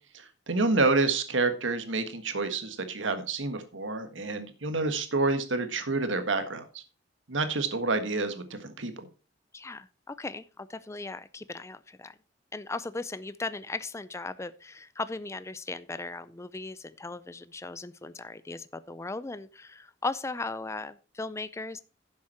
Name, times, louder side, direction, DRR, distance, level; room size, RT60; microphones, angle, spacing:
voice 1, 0.5-6.8 7.3-9.1, right 3 dB, 90° right, 8 dB, 1.6 m, -28 dB
voice 2, 9.5-12.1 12.5-21.8, left 3 dB, 15° left, 15 dB, 0.4 m, -37 dB
11.0 x 7.3 x 4.3 m, 0.33 s
head